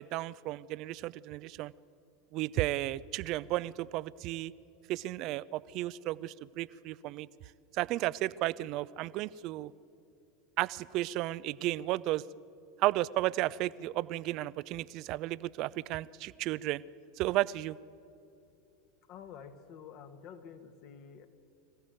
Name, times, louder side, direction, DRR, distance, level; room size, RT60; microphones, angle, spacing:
voice 1, 0.0-1.7 2.3-4.5 4.9-7.3 7.7-9.7 10.6-12.2 12.8-16.8 17.2-17.8, right 16 dB, 50° right, 20 dB, 0.5 m, -33 dB
voice 2, 19.1-21.3, left 7 dB, 50° left, 8 dB, 1.9 m, -49 dB
24.5 x 15.5 x 9.2 m, 2.7 s
figure-of-eight pair, 80°, 0 cm